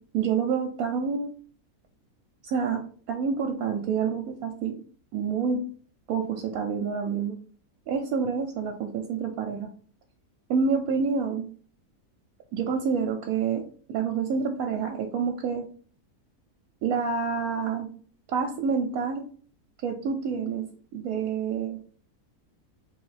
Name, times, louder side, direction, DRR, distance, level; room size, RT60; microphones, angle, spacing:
voice 1, 0.1-1.3 2.4-2.8 3.1-4.8 5.1-5.6 6.1-7.3 7.9-9.7 10.5-11.5 12.5-15.6 16.8-17.9 18.3-19.2 19.8-20.6 20.9-21.8, right 6 dB, 85° right, 2 dB, 1.1 m, -28 dB
3.4 x 3.0 x 4.0 m, 0.43 s
omnidirectional pair, 1.5 m